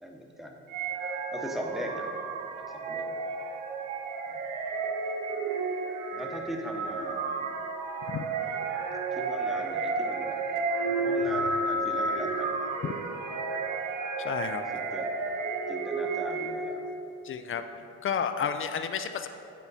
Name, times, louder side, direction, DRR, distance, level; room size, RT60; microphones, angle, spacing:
voice 1, 0.0-0.6 1.3-2.1 2.4-3.2 4.3-4.4 6.2-7.5 9.2-10.4 11.0-12.7 14.7-15.1 15.7-16.8 17.7-17.9, equal, ahead, 1 dB, 0.9 m, -39 dB
sound 1, 0.7-16.9, right 3 dB, 85° right, 0.7 m, -32 dB
voice 2, 14.2-14.6 17.2-17.6 18.0-19.3, left 7 dB, 45° left, 8 dB, 0.4 m, -31 dB
9.1 x 4.4 x 4.1 m, 2.8 s
cardioid pair, 90°, 30 cm